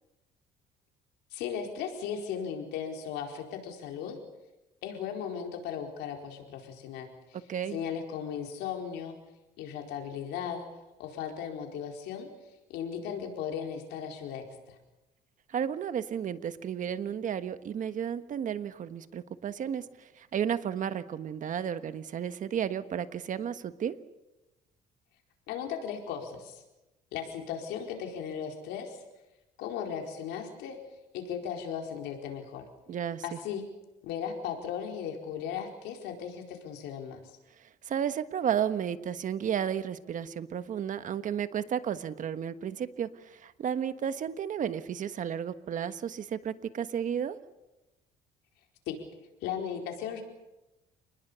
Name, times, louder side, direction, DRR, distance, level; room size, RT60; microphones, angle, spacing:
voice 1, 1.3-4.2 4.8-7.4 7.7-9.2 9.6-10.7 11.0-12.3 12.7-14.8 25.5-26.6 27.1-29.0 29.6-30.8 31.1-32.7 33.2-33.7 34.0-37.3 48.9-49.0 49.4-50.2, left 8 dB, 85° left, 3 dB, 4.6 m, -37 dB
voice 2, 7.3-7.8 15.5-24.0 32.9-33.4 37.6-47.4, right 8 dB, 50° right, 12 dB, 1.3 m, -33 dB
29.0 x 20.5 x 6.9 m, 1.0 s
cardioid pair, 110°, 17 cm